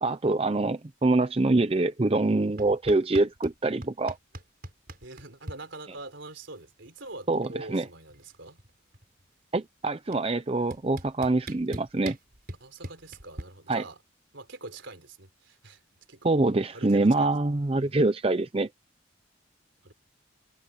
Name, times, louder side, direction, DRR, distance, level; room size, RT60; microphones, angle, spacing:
voice 1, 0.0-4.2 7.3-7.9 9.5-12.2 13.7-13.8 16.2-18.7, right 2 dB, 30° right, 0.5 m, -25 dB
sound 1, 2.6-3.6 3.8-5.6 6.9-7.0 7.2-7.6 7.9-9.2 10.1-10.2 10.7-13.4, right 1 dB, 50° right, 5.5 m, -41 dB
voice 2, 5.0-8.6 12.6-14.0 14.3-15.8 16.1-16.5 16.7-17.3 17.8-17.9 19.8-19.9, right 2 dB, 70° right, 3.7 m, -44 dB
head